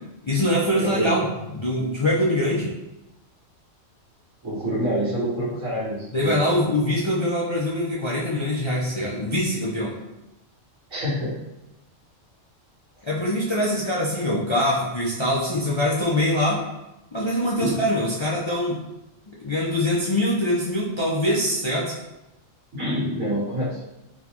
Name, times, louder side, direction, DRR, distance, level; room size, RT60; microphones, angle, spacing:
voice 1, 0.2-1.3 1.5-2.7 6.1-9.9 13.1-16.6 17.1-18.8 19.4-21.9, left 1 dB, 45° left, -6 dB, 0.3 m, -23 dB
voice 2, 0.8-1.1 4.4-6.6 10.9-11.4 17.6-17.8 22.7-23.8, equal, 80° right, -7 dB, 1.6 m, -26 dB
4.4 x 2.3 x 2.9 m, 0.95 s
omnidirectional pair, 1.4 m